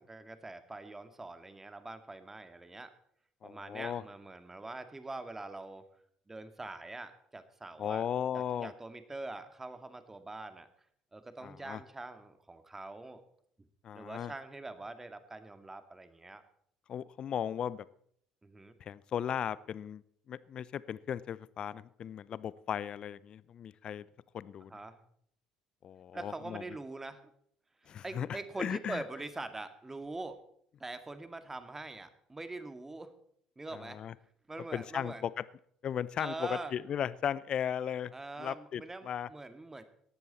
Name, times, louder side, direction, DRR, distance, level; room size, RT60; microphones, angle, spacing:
voice 1, 0.1-2.9 3.4-5.8 6.3-8.0 8.3-10.7 11.1-13.2 13.9-16.4 18.4-18.8 24.7-25.0 26.1-27.2 27.8-30.4 30.8-33.1 33.6-34.0 34.5-35.2 36.2-36.7 38.1-39.8, right 2 dB, 15° right, 10 dB, 2.1 m, -43 dB
voice 2, 3.4-4.0 7.8-8.7 11.4-11.8 13.8-14.3 16.9-17.8 18.8-24.1 24.3-24.7 25.8-26.6 27.9-29.0 33.7-34.1 34.7-35.4 35.8-38.1 38.4-39.3, left 9 dB, 45° left, 20 dB, 0.6 m, -36 dB
18.5 x 14.0 x 4.2 m, 0.66 s
hypercardioid pair, 60°, 2 cm